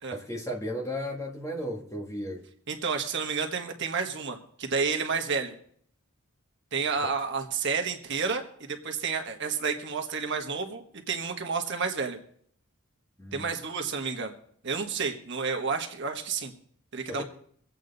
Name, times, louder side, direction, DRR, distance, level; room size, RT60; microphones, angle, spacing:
voice 1, 0.1-2.5 7.0-7.1 13.2-13.5 17.1-17.2, equal, 15° left, 1.6 m, -35 dB
voice 2, 2.7-5.5 6.7-12.2 13.3-14.3 14.6-16.5 16.9-17.2, right 5 dB, 50° right, 1.4 m, -30 dB
24.0 x 8.3 x 4.0 m
head